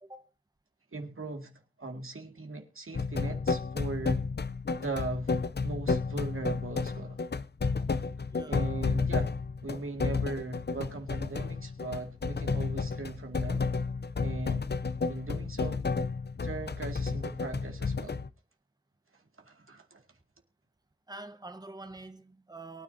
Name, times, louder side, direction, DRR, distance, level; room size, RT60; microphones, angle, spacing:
voice 1, 0.9-1.5 1.8-4.3 4.8-5.3 5.6-7.2 8.4-9.3 9.6-13.7 14.2-14.7 15.1-15.8 16.4-18.2 19.4-20.0, right 3 dB, 80° right, 2.1 m, -39 dB
sound 1, 2.9-18.3, left 4 dB, 50° left, 0.6 m, -31 dB
voice 2, 8.3-8.6 21.1-22.8, right 2 dB, 20° right, 1.1 m, -46 dB
23.0 x 10.0 x 2.7 m
wide cardioid pair, 50°, 21 cm